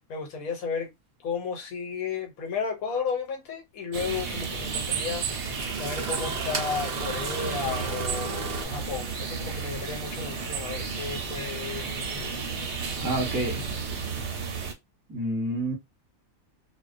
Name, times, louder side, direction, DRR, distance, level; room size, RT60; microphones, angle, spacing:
voice 1, 0.1-0.9 1.2-5.2 5.7-12.4, left 6 dB, 85° left, 1.2 m, -33 dB
Engine starting, 3.1-3.2 4.8-4.9 5.4-8.6, right 5 dB, 90° right, 0.4 m, -35 dB
sound 1, 3.9-14.7, right 5 dB, 65° right, 0.7 m, -32 dB
voice 2, 13.0-13.6 15.1-15.7, right 1 dB, 20° right, 0.7 m, -28 dB
2.4 x 2.1 x 2.5 m
omnidirectional pair, 1.5 m